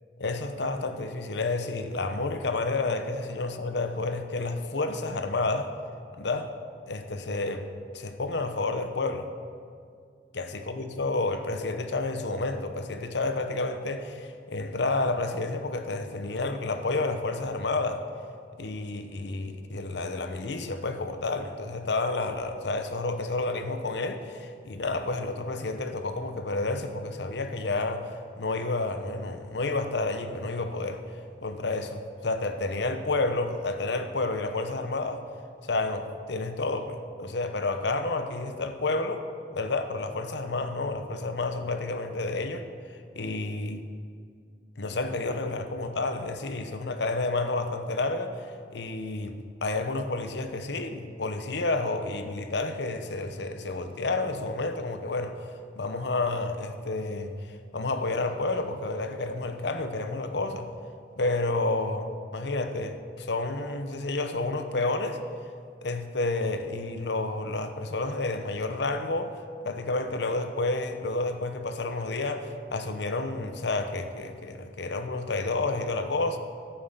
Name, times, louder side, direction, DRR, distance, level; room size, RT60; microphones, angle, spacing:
voice 1, 0.2-5.7 6.1-6.5 6.9-7.7 7.9-9.3 10.3-18.0 18.6-31.0 31.4-35.2 35.6-39.2 39.5-42.6 43.2-43.8 44.8-48.3 48.7-60.7 61.2-65.2 65.8-69.3 69.6-76.4, left 2 dB, 70° left, 8 dB, 0.9 m, -30 dB
11.5 x 9.3 x 6.7 m, 2.2 s
head